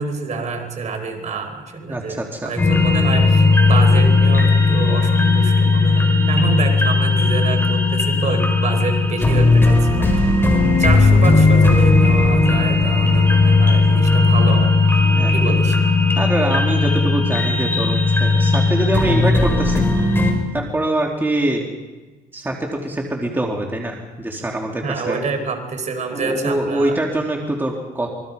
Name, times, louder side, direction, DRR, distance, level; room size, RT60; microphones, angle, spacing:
voice 1, 0.0-14.7 15.3-15.8 24.8-27.0, right 4 dB, 45° right, 5 dB, 4.6 m, -27 dB
voice 2, 1.9-2.5 15.1-15.3 16.2-19.9 20.5-21.6 22.3-25.2 26.1-28.1, right 1 dB, 10° right, 0 dB, 3.1 m, -24 dB
sound 1, 2.6-20.3, left 3 dB, 15° left, 5.6 m, -16 dB
27.0 x 23.0 x 5.3 m, 1.2 s
cardioid pair, 110°, 17 cm